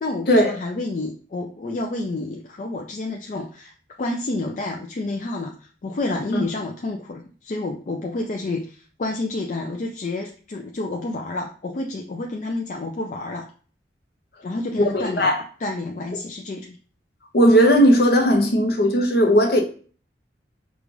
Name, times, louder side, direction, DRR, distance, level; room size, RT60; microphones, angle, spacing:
voice 1, 0.0-3.7 4.0-13.5 14.4-15.3 15.6-16.8, left 2 dB, 45° left, 0.4 m, -29 dB
voice 2, 14.8-15.4 17.3-19.6, equal, 60° left, 0.8 m, -17 dB
5.0 x 2.4 x 3.1 m
head